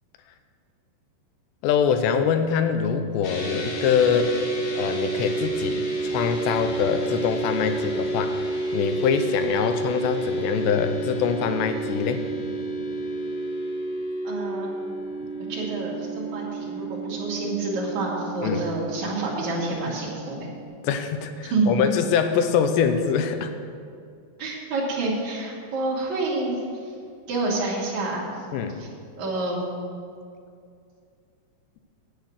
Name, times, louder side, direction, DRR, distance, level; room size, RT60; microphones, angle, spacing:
voice 1, 1.6-4.4 4.8-12.2 18.4-18.7 20.8-23.5 28.5-28.8, left 7 dB, 85° left, 8 dB, 2.9 m, -24 dB
sound 1, 3.2-20.6, right 2 dB, 60° left, 2.0 m, -30 dB
voice 2, 14.2-14.7 15.5-20.5 21.5-21.7 24.4-26.5 27.3-28.3 28.8-28.9 29.2-29.9, right 2 dB, 50° right, -5 dB, 3.3 m, -28 dB
10.0 x 8.4 x 6.5 m, 2.3 s
omnidirectional pair, 4.9 m